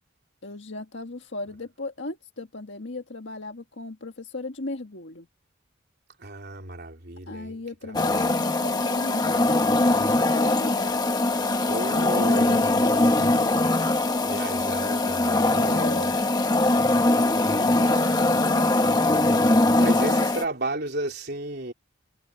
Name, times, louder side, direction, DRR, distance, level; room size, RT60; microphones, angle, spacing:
voice 1, 0.4-5.3 7.3-13.6 15.5-16.2 17.5-19.0, left 2 dB, 65° left, 1.7 m, -36 dB
voice 2, 6.2-8.3 11.6-12.6 14.2-16.2 19.8-21.7, right 2 dB, 55° right, 3.7 m, -33 dB
sound 1, 7.9-20.4, left 2 dB, 20° left, 1.4 m, -22 dB
head